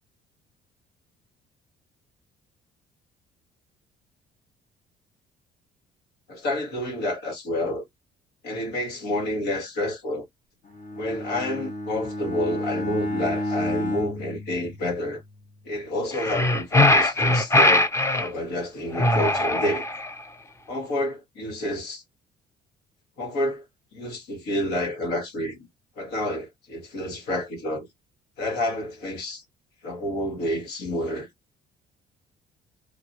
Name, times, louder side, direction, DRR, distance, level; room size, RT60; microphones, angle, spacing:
voice 1, 6.3-7.9 8.4-10.3 10.9-15.2 15.7-19.9 20.7-22.0 23.2-23.7 23.9-25.7 26.0-27.9 28.4-29.4 29.8-31.3, left 1 dB, 80° left, 2.0 m, -29 dB
Bowed string instrument, 10.7-15.3, left 1 dB, 50° left, 1.6 m, -31 dB
sound 1, 16.1-18.3 19.0-20.2, left 2 dB, 15° left, 0.6 m, -20 dB
3.7 x 2.6 x 3.0 m
cardioid pair, 110°, 17 cm